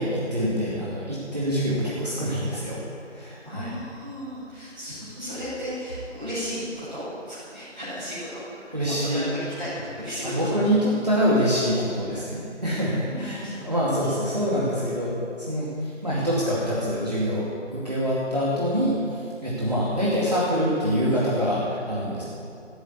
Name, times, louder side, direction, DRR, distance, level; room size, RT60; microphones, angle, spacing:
voice 1, 0.0-2.8 3.1-3.7 8.7-9.3 10.2-22.2, equal, 35° right, -8 dB, 2.4 m, -25 dB
voice 2, 3.4-8.4 8.8-10.5 13.0-13.5 14.0-14.1, equal, 5° right, -19 dB, 4.3 m, -35 dB
15.0 x 8.7 x 9.6 m, 2.7 s
figure-of-eight pair, 175°, 37 cm